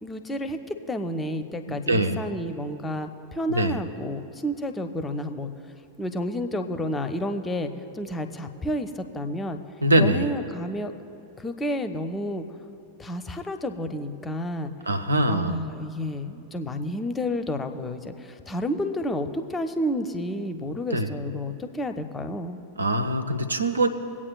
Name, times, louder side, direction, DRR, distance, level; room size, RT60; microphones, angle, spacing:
voice 1, 0.0-5.5 6.0-9.6 10.0-10.9 11.4-12.4 13.0-14.7 15.3-22.6, equal, 15° left, 8 dB, 0.6 m, -30 dB
voice 2, 1.7-2.2 3.5-3.8 9.8-10.3 14.9-15.6 20.9-21.1 22.8-23.9, right 1 dB, 75° right, 8 dB, 0.6 m, -23 dB
24.0 x 8.5 x 2.3 m, 2.6 s
figure-of-eight pair, 90°, 0 cm